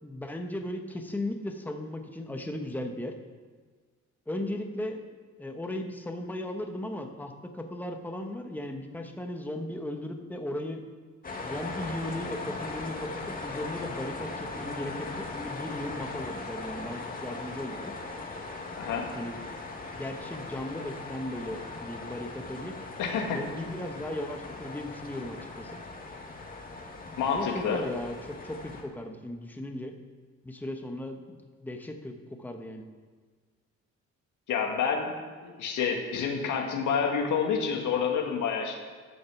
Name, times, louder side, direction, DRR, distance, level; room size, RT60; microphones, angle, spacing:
voice 1, 0.0-3.1 4.3-5.0 5.4-10.8 11.4-17.9 19.1-19.4 19.9-22.8 23.3-25.8 27.3-29.9 30.4-32.8, left 1 dB, 5° left, 4 dB, 1.1 m, -36 dB
sound 1, 11.2-28.8, left 3 dB, 30° left, 1.9 m, -39 dB
voice 2, 18.8-19.1 23.0-23.4 27.2-27.8 34.5-38.8, left 6 dB, 80° left, 1 dB, 2.0 m, -28 dB
12.0 x 6.5 x 7.0 m, 1.5 s
cardioid pair, 90°, 30 cm